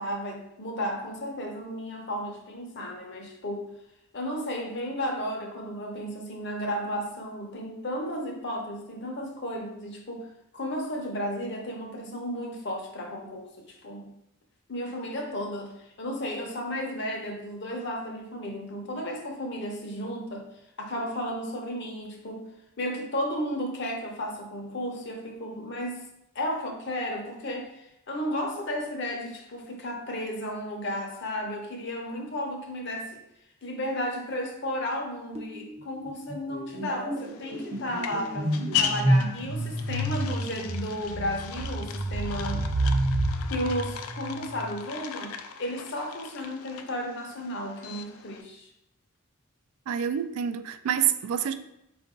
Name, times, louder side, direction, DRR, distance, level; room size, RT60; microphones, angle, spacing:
voice 1, 0.0-3.7 4.1-10.3 10.5-14.2 14.7-20.5 20.8-22.5 22.8-26.0 26.3-33.2 33.6-42.6 43.5-48.7, equal, 50° left, 0.8 m, -33 dB
sound 1, 35.4-35.7 35.9-44.7, right 1 dB, 30° right, 0.5 m, -29 dB
sound 2, 37.2-48.4, left 8 dB, 75° left, 0.3 m, -37 dB
voice 2, 49.9-51.5, right 9 dB, 80° right, 0.3 m, -27 dB
4.5 x 2.6 x 3.6 m
head